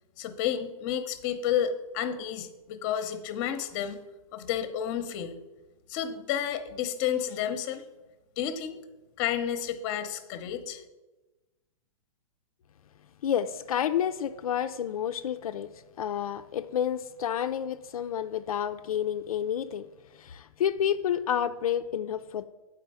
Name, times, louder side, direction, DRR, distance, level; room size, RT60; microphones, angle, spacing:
voice 1, 0.2-4.0 4.3-5.4 5.9-7.8 8.4-8.8 9.2-10.8, left 9 dB, 35° left, 0.7 m, -31 dB
voice 2, 13.2-15.7 16.0-19.9 20.1-22.5, left 9 dB, 80° left, 0.4 m, -29 dB
8.2 x 4.7 x 4.8 m
hypercardioid pair, 145°, 18 cm